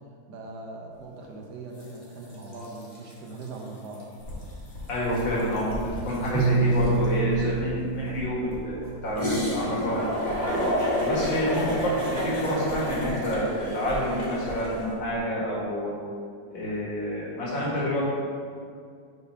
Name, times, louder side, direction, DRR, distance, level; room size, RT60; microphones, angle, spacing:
voice 1, 0.3-4.0 11.5-12.3, right 2 dB, 65° right, -1 dB, 1.4 m, -40 dB
sound 1, 1.8-2.0 2.3-3.6 3.9-4.0 4.3-7.1 9.2-14.8, equal, 30° left, 1.0 m, -30 dB
sound 2, 4.3-15.2, left 1 dB, 45° left, 2.0 m, -41 dB
voice 2, 4.9-10.3 11.0-11.6 12.1-15.9 16.5-18.0, equal, 75° left, -7 dB, 2.5 m, -28 dB
Bowed string instrument, 6.3-9.2, right 3 dB, 80° right, 1.5 m, -27 dB
5.3 x 4.6 x 5.5 m, 2.2 s
omnidirectional pair, 2.1 m